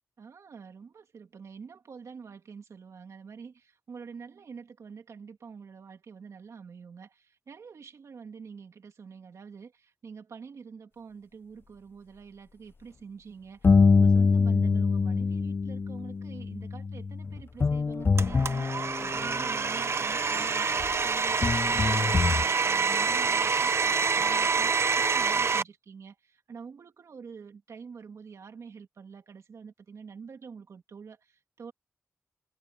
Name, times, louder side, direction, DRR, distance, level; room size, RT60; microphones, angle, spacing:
voice 1, 0.2-31.7, right 5 dB, 80° right, 2.6 m, -47 dB
sound 1, 13.6-19.6 20.8-20.9 21.4-22.5, left 4 dB, 45° left, 0.4 m, -24 dB
Domestic sounds home sounds, 18.2-25.6, right 5 dB, 60° right, 1.0 m, -27 dB
cardioid pair, 55°, 5 cm